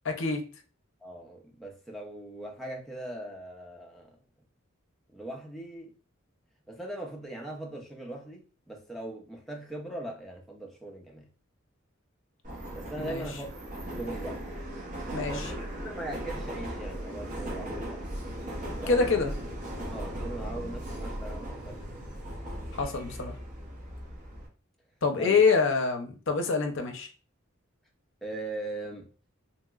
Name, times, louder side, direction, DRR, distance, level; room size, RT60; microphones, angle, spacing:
voice 1, 0.0-0.4 13.0-13.2 15.1-15.3 18.9-19.3 22.8-23.4 25.0-27.1, left 4 dB, 60° left, 0.6 m, -26 dB
voice 2, 1.0-4.2 5.1-5.9 6.7-11.3 12.7-14.4 15.3-18.5 18.8-19.4 19.9-21.9 25.2-25.4 28.2-29.1, right 1 dB, ahead, 0.5 m, -40 dB
Subway metro underground, 12.4-24.5, right 1 dB, 40° right, 0.8 m, -37 dB
3.0 x 2.8 x 2.3 m
head